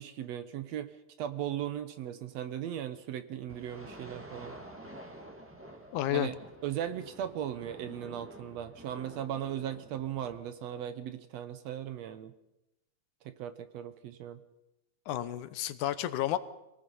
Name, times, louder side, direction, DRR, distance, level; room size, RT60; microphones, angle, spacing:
voice 1, 0.0-4.6 6.1-6.4 6.6-12.3 13.3-14.4, right 10 dB, 70° right, 11 dB, 1.8 m, -37 dB
sound 1, 3.5-10.4, right 1 dB, 5° right, 1.2 m, -49 dB
voice 2, 5.9-6.3 15.1-16.4, left 13 dB, 80° left, 13 dB, 2.4 m, -31 dB
26.0 x 18.5 x 5.5 m, 0.94 s
omnidirectional pair, 3.5 m